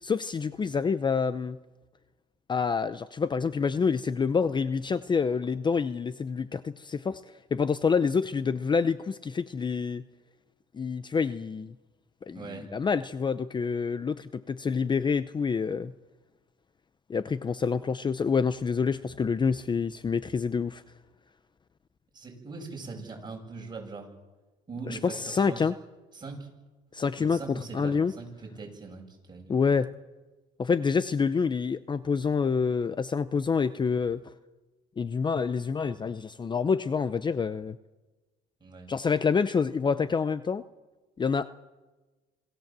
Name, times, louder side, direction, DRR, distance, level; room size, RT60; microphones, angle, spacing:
voice 1, 0.0-1.6 2.5-7.2 7.5-10.0 10.7-11.7 12.2-15.9 17.1-20.8 24.9-25.7 26.9-28.1 29.5-29.9 30.6-34.2 35.0-37.8 38.9-40.6 41.2-41.5, left 5 dB, 25° left, 13 dB, 0.7 m, -27 dB
voice 2, 12.3-12.7 22.1-24.1 24.7-25.7 26.1-26.5 27.2-29.6 38.6-38.9, right 4 dB, 25° right, 1 dB, 7.8 m, -41 dB
26.5 x 17.0 x 7.5 m, 1.2 s
cardioid pair, 110°, 17 cm